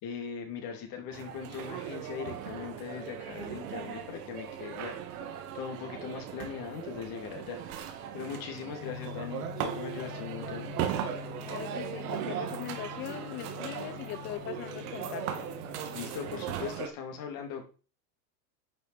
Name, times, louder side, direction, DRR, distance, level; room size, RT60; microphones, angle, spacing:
voice 1, 0.0-4.9 5.5-7.6 8.1-10.7 15.9-17.7, left 7 dB, 45° left, 3.3 m, -40 dB
Ambient sound inside cafe bar, 1.1-16.9, right 9 dB, 65° right, 2.2 m, -38 dB
Gong, 8.8-16.2, left 8 dB, 85° left, 1.6 m, -45 dB
voice 2, 11.4-15.5, left 12 dB, 25° left, 0.5 m, -40 dB
10.5 x 6.5 x 4.4 m
hypercardioid pair, 115°, 48 cm